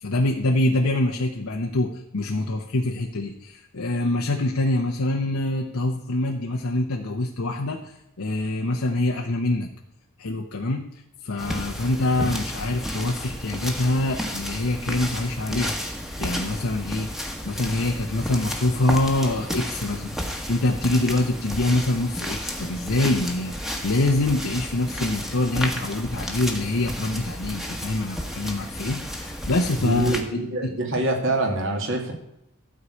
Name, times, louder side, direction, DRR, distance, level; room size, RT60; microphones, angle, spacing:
voice 1, 0.0-9.7 10.2-10.8 11.2-15.8 16.2-17.1 17.4-30.7, left 2 dB, 80° left, 1 dB, 0.9 m, -25 dB
sound 1, 11.4-30.2, equal, ahead, 1.2 m, -32 dB
voice 2, 29.8-32.1, right 2 dB, 65° right, 2 dB, 2.4 m, -25 dB
13.0 x 4.8 x 8.4 m, 0.81 s
head